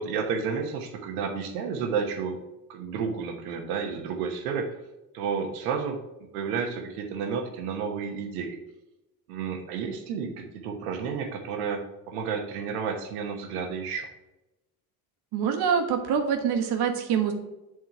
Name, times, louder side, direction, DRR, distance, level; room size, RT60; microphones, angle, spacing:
voice 1, 0.0-2.4 2.7-4.8 5.1-6.0 6.3-8.6 9.3-14.1, right 6 dB, 85° right, 4 dB, 1.2 m, -31 dB
voice 2, 15.3-17.3, right 7 dB, 65° right, 4 dB, 1.4 m, -25 dB
7.7 x 3.7 x 4.6 m, 0.97 s
hypercardioid pair, 70°, 43 cm